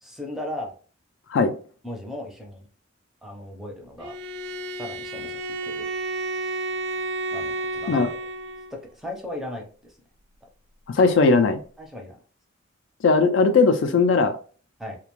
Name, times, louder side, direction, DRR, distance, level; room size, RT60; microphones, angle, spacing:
voice 1, 0.0-0.7 1.8-2.7 3.2-4.2 4.8-5.9 7.3-8.0 8.7-10.0 11.8-12.2 14.8-15.0, left 1 dB, ahead, 0.5 m, -36 dB
Bowed string instrument, 4.0-8.8, right 2 dB, 75° right, 0.3 m, -31 dB
voice 2, 10.9-11.6 13.0-14.4, left 4 dB, 70° left, 0.3 m, -18 dB
sound 1, 11.0-11.6, left 1 dB, 45° left, 0.7 m, -41 dB
2.4 x 2.2 x 2.9 m
head